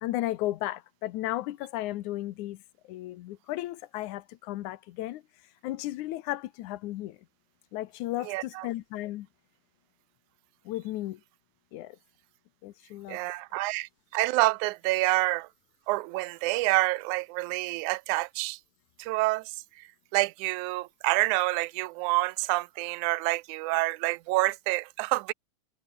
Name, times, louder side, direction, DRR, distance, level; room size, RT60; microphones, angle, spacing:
voice 1, 0.0-2.6 2.9-5.2 5.6-7.2 7.7-9.3 10.7-11.2 11.7-12.0 12.6-13.2, left 15 dB, 80° left, 2.3 m, -34 dB
voice 2, 8.2-8.7 13.1-15.5 15.9-18.6 19.0-19.5 20.1-25.3, right 21 dB, 85° right, 2.0 m, -27 dB
omnidirectional pair, 3.4 m